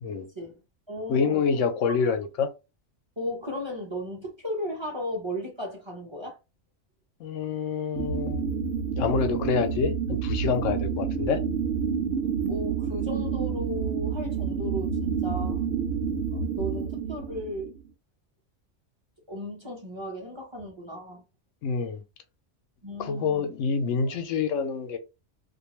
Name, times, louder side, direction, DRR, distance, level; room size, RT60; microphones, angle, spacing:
voice 1, 0.3-0.6 0.9-1.4 3.2-6.4 12.2-15.6 16.3-17.7 19.3-21.2 22.8-23.5, left 1 dB, 25° right, 0.8 m, -35 dB
voice 2, 1.1-2.5 7.2-8.4 9.0-11.4 21.6-22.0 23.0-25.0, left 5 dB, 90° left, 1.0 m, -27 dB
sound 1, 7.9-17.8, right 6 dB, 70° right, 0.9 m, -29 dB
2.5 x 2.3 x 3.0 m
omnidirectional pair, 1.3 m